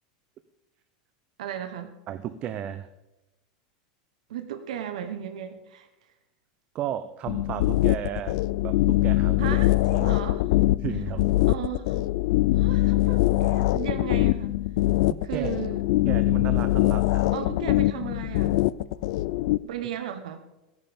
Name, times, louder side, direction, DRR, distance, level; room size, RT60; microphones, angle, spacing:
voice 1, 1.4-1.9 4.3-5.9 9.4-10.5 11.5-12.0 12.5-14.6 15.2-15.8 17.3-18.6 19.6-20.4, right 9 dB, 85° right, 8 dB, 1.2 m, -35 dB
voice 2, 2.1-2.9 6.7-8.4 8.6-9.6 9.9-10.1 10.8-11.3 15.1-15.5 16.0-17.5, right 10 dB, 35° right, 12 dB, 0.7 m, -34 dB
sound 1, 7.3-19.6, left 17 dB, 65° left, 0.5 m, -23 dB
16.5 x 11.0 x 5.2 m, 0.99 s
supercardioid pair, 150°, 4 cm